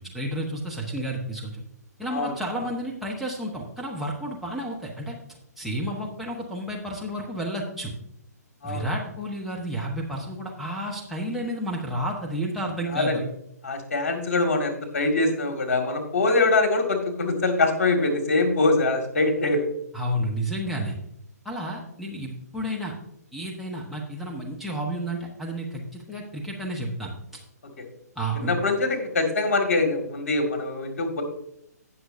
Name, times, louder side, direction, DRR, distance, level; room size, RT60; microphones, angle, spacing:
voice 1, 0.0-1.6 2.0-5.1 5.6-7.9 8.6-13.2 19.9-20.9 21.4-22.9 23.3-27.1 28.2-28.5, right 1 dB, ahead, -4 dB, 1.1 m, -31 dB
voice 2, 13.6-19.7 28.4-31.2, left 3 dB, 55° left, 4 dB, 2.1 m, -23 dB
18.0 x 6.3 x 2.7 m, 0.75 s
figure-of-eight pair, 130°, 9 cm